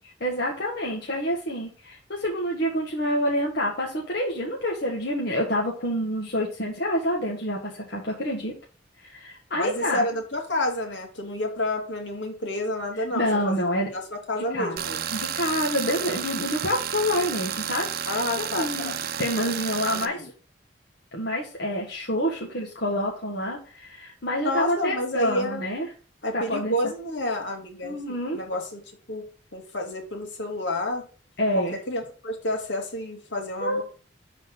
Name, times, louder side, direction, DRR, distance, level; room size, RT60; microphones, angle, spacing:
voice 1, 0.2-8.5 9.0-10.1 13.1-13.9 14.5-14.8 15.1-18.1 18.4-18.9 19.2-20.2 21.1-25.9 26.3-26.7 27.8-28.4 31.4-31.8 33.6-33.8, equal, 60° left, -2 dB, 1.7 m, -27 dB
voice 2, 9.5-13.6 13.9-15.0 18.1-19.0 19.9-20.3 24.4-25.6 26.2-28.0 28.3-28.8 29.1-29.2 29.5-31.0 31.9-33.8, left 1 dB, 75° left, 2 dB, 2.5 m, -29 dB
Tools, 14.8-20.1, right 8 dB, 55° right, 0.7 m, -31 dB
12.0 x 4.2 x 4.0 m, 0.39 s
head